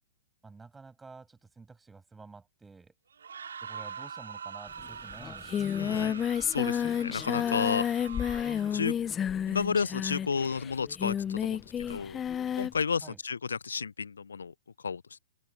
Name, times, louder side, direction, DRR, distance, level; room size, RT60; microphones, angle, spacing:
voice 1, 0.4-2.9 3.6-6.2 13.0-13.2, right 4 dB, 10° right, 7.6 m, -50 dB
sound 1, 3.1-8.9, right 7 dB, 75° right, 3.0 m, -44 dB
Singing, 4.8-4.9 5.1-12.8, left 9 dB, 20° left, 0.6 m, -31 dB
voice 2, 5.8-6.3 6.5-7.9 8.7-8.9 9.5-11.6 11.9-12.2 12.6-14.5 14.8-15.2, left 5 dB, 80° left, 0.5 m, -32 dB
figure-of-eight pair, 110°, 0 cm